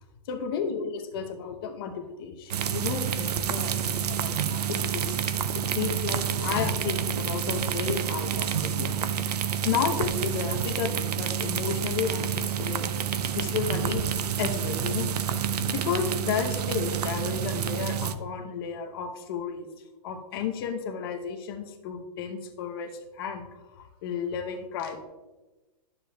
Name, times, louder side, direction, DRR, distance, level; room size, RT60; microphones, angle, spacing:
voice 1, 0.3-5.2 5.5-9.0 9.6-12.9 13.3-14.1 14.4-15.1 15.7-19.7 20.0-25.0, left 7 dB, 35° left, 4 dB, 0.8 m, -32 dB
sound 1, 2.5-18.1, right 8 dB, 75° right, 0.6 m, -29 dB
12.0 x 6.9 x 2.3 m, 1.2 s
hypercardioid pair, 165°, 21 cm